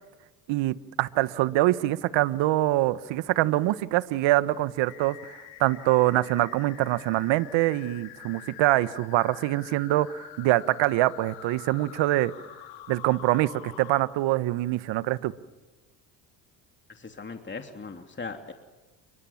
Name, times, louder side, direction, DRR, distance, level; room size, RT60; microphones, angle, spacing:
voice 1, 0.5-5.1 5.6-12.3 12.9-15.3, right 16 dB, 65° right, 15 dB, 1.4 m, -24 dB
sound 1, 4.8-14.0, left 13 dB, 70° left, 3.7 m, -46 dB
voice 2, 16.9-18.5, left 4 dB, 25° left, 5 dB, 3.1 m, -39 dB
29.5 x 24.0 x 7.4 m, 1.2 s
hypercardioid pair, 70°, 48 cm